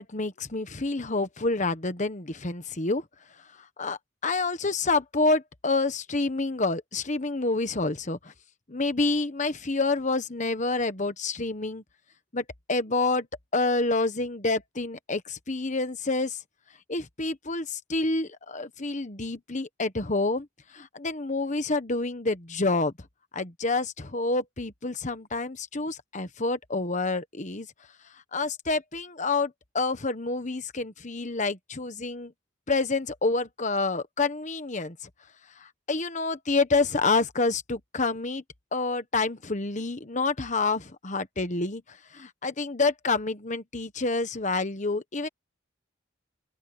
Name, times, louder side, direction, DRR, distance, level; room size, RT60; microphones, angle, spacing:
voice 1, 0.0-3.0 3.8-8.3 8.7-11.8 12.3-13.3 13.5-16.4 16.9-20.5 20.7-22.9 23.3-27.7 28.3-32.3 32.7-35.0 35.6-38.4 38.7-45.3, left 3 dB, 40° left, 1.3 m, -28 dB
open air
head